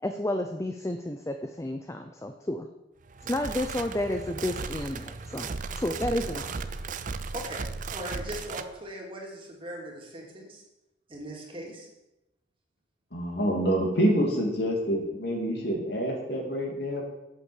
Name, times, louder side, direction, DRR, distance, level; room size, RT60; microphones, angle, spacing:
voice 1, 0.0-2.7 3.2-5.5 5.8-6.5, left 1 dB, 15° left, 6 dB, 0.6 m, -31 dB
sound 1, 3.0-8.7, right 4 dB, 45° right, 0.6 m, -36 dB
voice 2, 6.1-6.4 7.3-10.6 11.1-11.9, right 1 dB, 30° right, -1 dB, 2.7 m, -40 dB
voice 3, 13.1-17.0, equal, 60° left, 0 dB, 2.9 m, -27 dB
8.3 x 8.3 x 7.3 m, 0.93 s
head